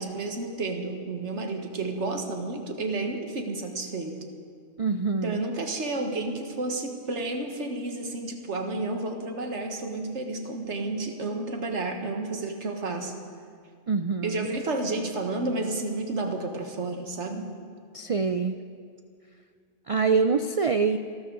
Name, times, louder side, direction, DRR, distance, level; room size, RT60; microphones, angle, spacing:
voice 1, 0.0-4.2 5.2-13.1 14.2-17.5, right 2 dB, 75° right, 4 dB, 1.8 m, -31 dB
voice 2, 4.8-5.4 13.9-14.5 17.9-18.6 19.9-21.0, right 5 dB, 55° right, 9 dB, 0.4 m, -25 dB
28.0 x 13.0 x 3.9 m, 2.1 s
omnidirectional pair, 1.2 m